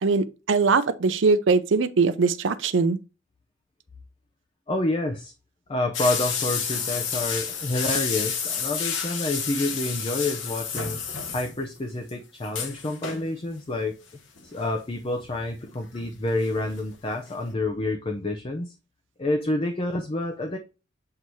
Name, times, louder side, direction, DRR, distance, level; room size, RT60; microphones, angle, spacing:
voice 1, 0.0-3.0, right 4 dB, 65° right, 0.5 m, -21 dB
voice 2, 4.7-5.3 5.7-11.0 11.3-13.9 14.4-18.7 19.2-20.6, left 2 dB, 30° left, 0.6 m, -28 dB
sound 1, 5.9-11.8 12.1-12.2 12.4-13.3 14.4-14.6 15.2-16.5 16.8-16.9 17.3-17.4, left 6 dB, 70° left, 1.0 m, -30 dB
7.7 x 2.8 x 4.5 m
head